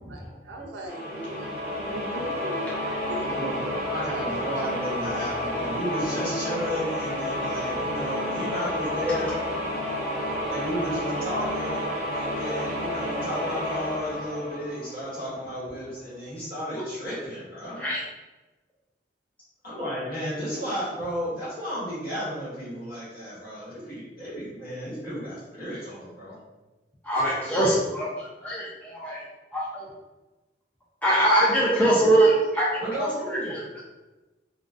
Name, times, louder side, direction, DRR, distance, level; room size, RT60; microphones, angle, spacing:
voice 1, 0.1-1.5 1.9-3.3, right 1 dB, 75° right, 0 dB, 0.5 m, -38 dB
sound 1, 0.9-15.5, left 1 dB, 10° right, 1.0 m, -30 dB
voice 2, 3.2-9.3 10.5-11.8 12.1-17.8 19.6-26.4 32.8-33.6, equal, 55° left, -9 dB, 1.3 m, -33 dB
voice 3, 27.0-29.2 29.5-29.9 31.0-32.7 33.0-33.8, right 1 dB, 10° left, -7 dB, 0.4 m, -23 dB
2.4 x 2.3 x 2.5 m, 1.1 s
head